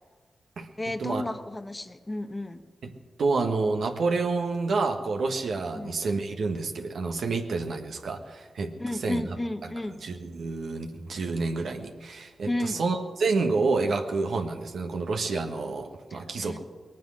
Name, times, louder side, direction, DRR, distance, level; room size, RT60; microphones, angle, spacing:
voice 1, 0.8-2.6 5.7-6.0 8.8-10.0 12.4-12.8 16.1-16.6, left 1 dB, 25° left, 9 dB, 1.0 m, -33 dB
voice 2, 3.2-8.7 9.0-9.2 10.0-16.6, right 3 dB, 75° right, 4 dB, 1.4 m, -28 dB
20.5 x 9.2 x 6.4 m, 1.4 s
supercardioid pair, 45°, 0 cm